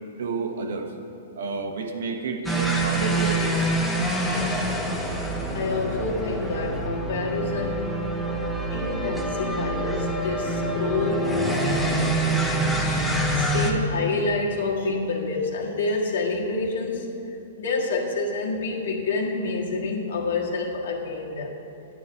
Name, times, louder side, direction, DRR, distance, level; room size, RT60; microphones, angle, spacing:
voice 1, 0.2-0.9 1.4-3.6, right 4 dB, 75° right, 4 dB, 1.2 m, -30 dB
sound 1, 2.5-13.7, right 1 dB, ahead, 0.8 m, -26 dB
voice 2, 5.5-7.9 8.7-12.0 12.5-17.1 17.6-21.5, left 3 dB, 80° left, -1 dB, 1.7 m, -28 dB
11.0 x 5.0 x 8.4 m, 2.7 s
hypercardioid pair, 165°, 0 cm